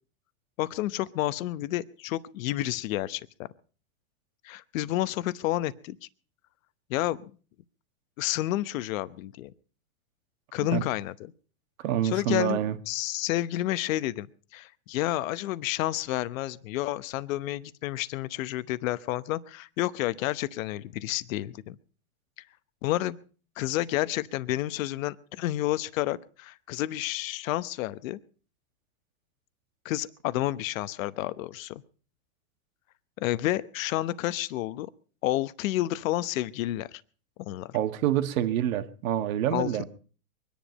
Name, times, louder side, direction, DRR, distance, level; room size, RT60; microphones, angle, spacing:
voice 1, 0.6-3.2 4.4-6.0 6.9-7.2 8.2-9.5 10.5-11.3 12.0-14.3 14.5-21.8 22.8-23.2 23.6-28.2 29.8-31.8 33.2-34.9 35.2-37.0 37.4-37.8 39.5-39.8, left 15 dB, 65° left, 16 dB, 1.0 m, -30 dB
voice 2, 11.8-12.8 37.7-39.8, right 11 dB, 65° right, 9 dB, 1.7 m, -27 dB
23.0 x 10.5 x 5.2 m, 0.40 s
supercardioid pair, 135°, 44 cm